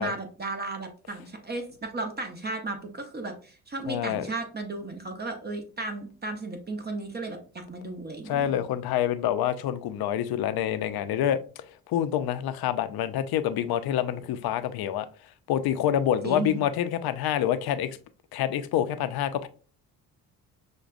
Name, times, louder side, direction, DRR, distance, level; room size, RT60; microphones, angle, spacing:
voice 1, 0.0-8.5 16.2-16.6, right 2 dB, 25° right, 0.8 m, -35 dB
voice 2, 3.9-4.3 8.3-11.4 11.9-15.1 15.5-17.9 18.3-19.5, left 10 dB, 70° left, 0.5 m, -27 dB
6.0 x 2.2 x 2.5 m
cardioid pair, 100°, 38 cm